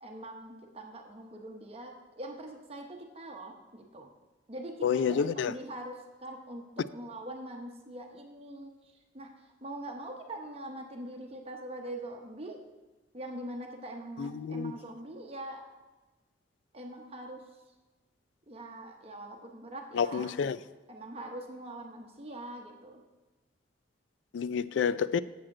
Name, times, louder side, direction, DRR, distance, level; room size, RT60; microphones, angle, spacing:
voice 1, 0.0-4.1 4.5-8.7 9.1-9.3 9.6-12.6 13.1-15.6 16.7-17.4 18.5-20.3 20.9-23.0, right 1 dB, 35° right, 0.8 m, -43 dB
voice 2, 4.8-5.5 14.2-14.7 19.9-20.6 24.3-25.2, left 7 dB, 80° left, 0.3 m, -29 dB
7.5 x 4.9 x 7.3 m
head